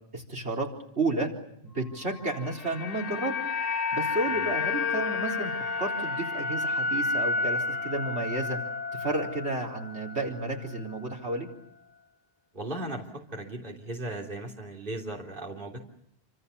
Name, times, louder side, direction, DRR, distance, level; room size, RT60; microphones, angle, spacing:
voice 1, 0.1-0.7 1.0-1.3 1.6-3.3 3.9-5.5 5.8-8.6 8.9-11.5, right 2 dB, 85° right, 0 dB, 4.5 m, -31 dB
sound 1, 2.2-10.5 10.7-10.9, left 4 dB, 40° left, 1.3 m, -31 dB
voice 2, 12.5-13.1 13.3-15.8, right 1 dB, 55° right, 0 dB, 3.5 m, -37 dB
29.0 x 26.5 x 7.0 m, 0.76 s
omnidirectional pair, 1.1 m